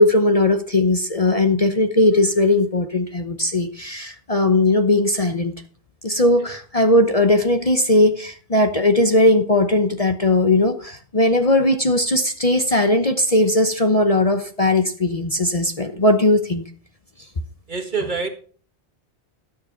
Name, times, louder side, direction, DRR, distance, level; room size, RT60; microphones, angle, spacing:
voice 1, 0.0-5.5 6.0-16.6, left 1 dB, 35° left, 0.9 m, -18 dB
voice 2, 17.7-18.3, right 4 dB, 45° right, 1.8 m, -25 dB
12.5 x 6.9 x 5.8 m
omnidirectional pair, 1.1 m